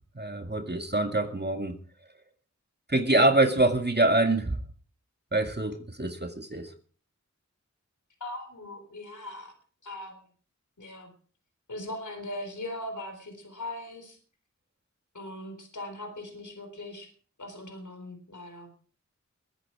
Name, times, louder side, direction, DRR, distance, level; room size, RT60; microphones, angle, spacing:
voice 1, 0.2-1.8 2.9-4.6 5.3-6.7, right 2 dB, 35° right, 2.1 m, -25 dB
voice 2, 8.2-9.5 9.8-10.2 10.8-11.1 11.7-14.2 15.1-17.1 17.4-18.7, left 1 dB, 80° left, 4.2 m, -40 dB
21.5 x 9.3 x 4.9 m
wide cardioid pair, 45°, 30 cm